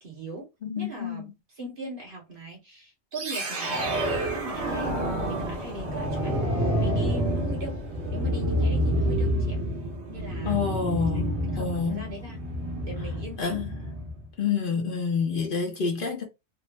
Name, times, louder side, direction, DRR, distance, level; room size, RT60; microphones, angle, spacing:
voice 1, 0.0-0.5 0.7-5.0 5.3-7.8 8.1-9.6 10.1-10.6 11.5-12.4 12.8-13.6, right 1 dB, 50° right, 1.5 m, -40 dB
voice 2, 0.6-1.2 10.4-11.3 11.6-12.1 13.4-13.7 14.4-16.2, left 6 dB, 55° left, 0.9 m, -28 dB
sound 1, 3.1-14.2, equal, 75° right, 1.4 m, -28 dB
3.3 x 2.0 x 3.2 m
omnidirectional pair, 1.1 m